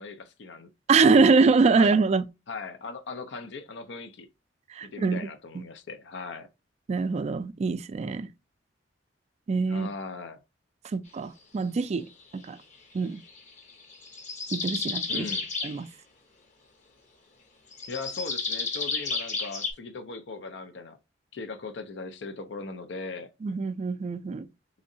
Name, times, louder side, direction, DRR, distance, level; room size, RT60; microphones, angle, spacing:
voice 1, 0.0-0.7 1.0-1.3 1.8-1.9 2.5-4.3 4.8-6.5 9.7-10.4 15.1-15.5 17.9-21.0 21.3-23.3, left 4 dB, 70° left, 0.5 m, -39 dB
voice 2, 0.9-2.3 4.7-5.2 5.5-5.6 6.9-8.3 9.5-9.9 10.8-12.6 12.9-13.2 14.5-15.3 15.6-15.9 23.4-24.5, right 4 dB, 35° right, 0.3 m, -24 dB
sound 1, 13.3-15.8 17.7-19.7, left 4 dB, 40° left, 0.9 m, -32 dB
3.7 x 3.1 x 2.6 m
head